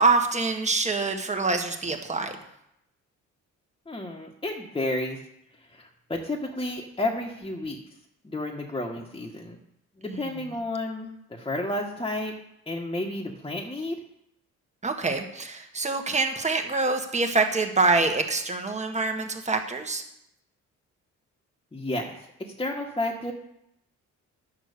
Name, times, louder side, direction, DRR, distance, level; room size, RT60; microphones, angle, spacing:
voice 1, 0.0-2.4 10.1-10.2 14.8-20.0, right 3 dB, 25° right, 4 dB, 1.6 m, -25 dB
voice 2, 3.9-5.2 5.7-7.8 8.2-9.6 10.0-12.3 12.7-14.0 21.7-23.3, left 1 dB, 15° left, -1 dB, 1.5 m, -31 dB
10.0 x 6.6 x 6.8 m, 0.79 s
cardioid pair, 90°, 30 cm